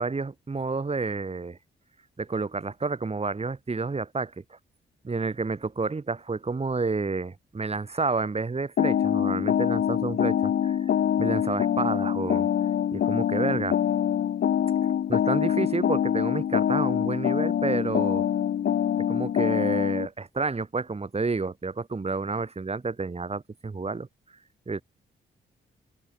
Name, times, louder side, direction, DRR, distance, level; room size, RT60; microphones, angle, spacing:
voice 1, 0.0-1.6 2.2-4.6 5.0-10.8 11.2-12.5 12.9-13.8 15.1-18.3 19.1-24.1 24.7-24.8, right 4 dB, 30° right, 2.5 m, -30 dB
sound 1, 8.8-20.1, left 9 dB, 55° left, 0.7 m, -25 dB
cardioid pair, 70°, 21 cm